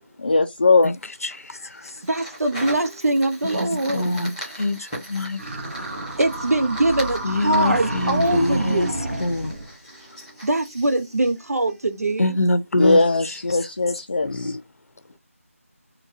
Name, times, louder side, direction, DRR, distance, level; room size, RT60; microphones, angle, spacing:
voice 1, 0.2-0.9 12.8-14.6, left 3 dB, 35° left, 0.3 m, -19 dB
Fire, 0.8-12.2, equal, 5° right, 0.9 m, -40 dB
voice 2, 1.2-1.9 3.8-4.3 4.6-5.4 7.2-8.9 9.2-9.5 12.2-13.0 14.2-14.6, left 2 dB, 80° left, 0.6 m, -24 dB
voice 3, 2.1-4.3 6.2-8.9 10.4-12.3, right 2 dB, 85° right, 0.7 m, -22 dB
sound 1, 5.4-9.7, right 2 dB, 50° right, 1.2 m, -30 dB
4.0 x 2.2 x 2.6 m
figure-of-eight pair, 170°, 8 cm